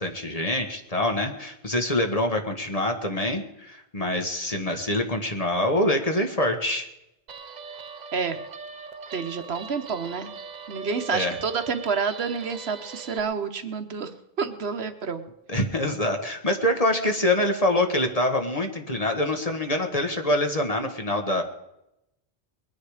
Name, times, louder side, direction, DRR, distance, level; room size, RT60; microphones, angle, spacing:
voice 1, 0.0-6.9 11.1-11.4 15.5-21.4, left 1 dB, 35° left, 4 dB, 1.5 m, -25 dB
Guitar, 7.3-13.2, right 5 dB, 45° right, 0.8 m, -40 dB
voice 2, 8.1-8.4 9.1-10.4 10.7-14.1 14.4-15.3, right 5 dB, 70° right, 9 dB, 1.3 m, -29 dB
21.0 x 10.0 x 4.9 m, 0.86 s
omnidirectional pair, 1.1 m